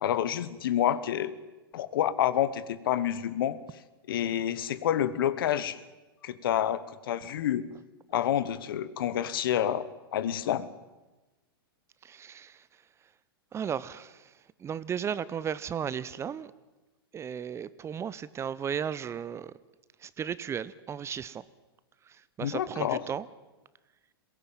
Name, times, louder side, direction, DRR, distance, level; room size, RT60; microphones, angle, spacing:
voice 1, 0.0-1.3 1.7-3.6 4.1-5.8 6.2-6.8 7.1-7.6 8.1-10.7 22.4-23.0, left 11 dB, 65° left, 16 dB, 1.3 m, -28 dB
voice 2, 12.0-12.6 13.5-14.3 14.6-16.5 17.1-19.5 20.0-21.4 22.1-23.3, right 8 dB, 20° right, 18 dB, 0.8 m, -35 dB
21.5 x 17.5 x 9.1 m, 1.1 s
hypercardioid pair, 105°, 13 cm